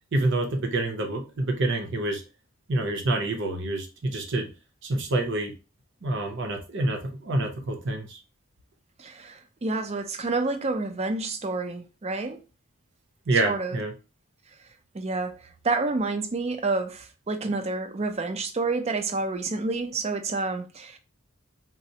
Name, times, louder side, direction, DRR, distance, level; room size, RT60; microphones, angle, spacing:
voice 1, 0.1-2.2 2.7-4.5 4.8-5.5 6.0-8.2 13.3-13.9, right 2 dB, 55° right, 0.7 m, -27 dB
voice 2, 9.0-12.4 13.4-13.8 14.9-21.0, right 3 dB, 30° right, 0.4 m, -29 dB
4.0 x 2.0 x 2.7 m
head